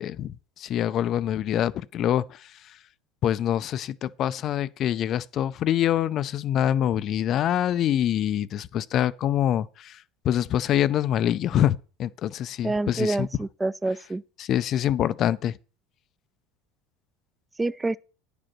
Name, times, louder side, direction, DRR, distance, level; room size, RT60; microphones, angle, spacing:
voice 1, 0.0-2.8 3.2-13.3 14.4-15.6, left 11 dB, 45° left, 0.4 m, -25 dB
voice 2, 12.6-14.2 17.6-18.0, right 2 dB, 15° right, 0.4 m, -27 dB
9.7 x 5.0 x 6.0 m
supercardioid pair, 95°, 0 cm